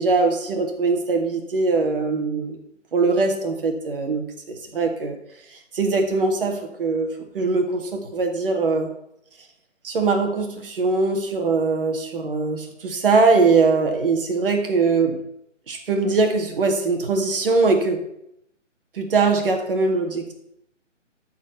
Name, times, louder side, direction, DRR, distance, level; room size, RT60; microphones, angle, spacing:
voice 1, 0.0-2.6 2.9-4.2 4.8-5.1 5.7-8.9 9.8-15.2 15.7-18.0 19.0-20.3, right 3 dB, 45° right, 4 dB, 1.8 m, -21 dB
12.5 x 4.5 x 6.6 m, 0.76 s
figure-of-eight pair, 145°, 38 cm